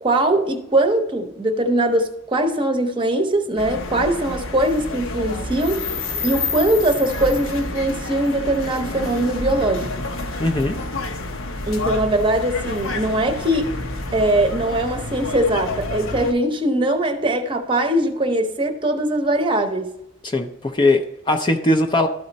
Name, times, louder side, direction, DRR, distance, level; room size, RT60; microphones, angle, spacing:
voice 1, 0.0-9.9 11.7-13.7 14.1-19.9, right 1 dB, 25° right, 0.8 m, -21 dB
sound 1, 3.6-16.3, left 2 dB, 75° left, 0.8 m, -29 dB
voice 2, 10.4-10.8 20.2-22.1, left 2 dB, 20° left, 0.5 m, -20 dB
12.5 x 4.3 x 4.0 m
head